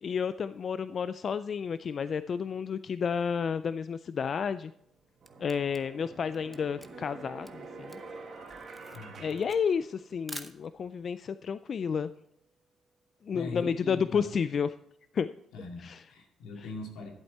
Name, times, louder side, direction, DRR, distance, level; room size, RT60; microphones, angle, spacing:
voice 1, 0.0-4.7 5.4-8.0 9.2-12.1 13.2-14.7 15.1-15.3 15.8-16.0 16.6-16.7, left 6 dB, 50° left, 13 dB, 0.3 m, -31 dB
sound 1, 4.6-4.7 5.2-10.4, right 3 dB, 50° right, 1.9 m, -47 dB
Camera, 4.8-11.0, equal, ahead, 0.8 m, -48 dB
voice 2, 8.9-9.4 13.3-14.3 15.5-17.1, left 3 dB, 85° left, 2 dB, 2.2 m, -41 dB
12.0 x 8.0 x 4.2 m, 0.76 s
cardioid pair, 90°, 0 cm